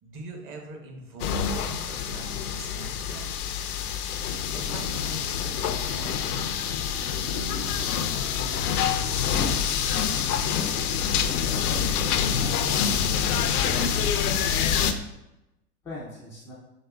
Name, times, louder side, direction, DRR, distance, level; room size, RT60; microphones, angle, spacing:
voice 1, 0.0-3.3 4.5-6.3, right 2 dB, 30° right, 1 dB, 0.8 m, -43 dB
sound 1, 1.2-14.9, left 7 dB, 75° left, 0.5 m, -26 dB
voice 2, 12.4-12.9 13.2-14.5 15.8-16.5, left 1 dB, 5° left, -8 dB, 0.3 m, -41 dB
4.9 x 3.3 x 2.2 m, 0.93 s
hypercardioid pair, 105°, 45 cm